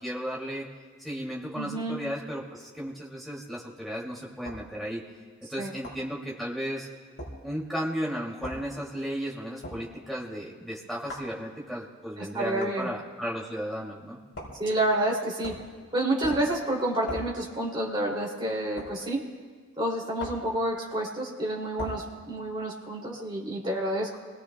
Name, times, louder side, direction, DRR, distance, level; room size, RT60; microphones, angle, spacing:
voice 1, 0.0-0.7 1.0-5.0 5.5-6.9 7.4-14.2, equal, ahead, -4 dB, 2.5 m, -34 dB
voice 2, 1.5-2.0 5.6-5.7 12.2-12.9 14.6-15.6 15.9-19.2 19.8-24.2, right 1 dB, 25° right, -3 dB, 2.8 m, -29 dB
sound 1, 4.4-4.7 5.8-6.1 7.2-7.4 8.4-8.6 9.6-9.8 11.1-11.3 12.6-12.8 14.3-14.6 15.4-15.7 16.2-16.5 17.1-17.3 18.8-18.9 20.2-20.5 21.8-22.0, left 1 dB, 60° left, 5.0 m, -39 dB
28.0 x 21.0 x 2.3 m, 1.5 s
head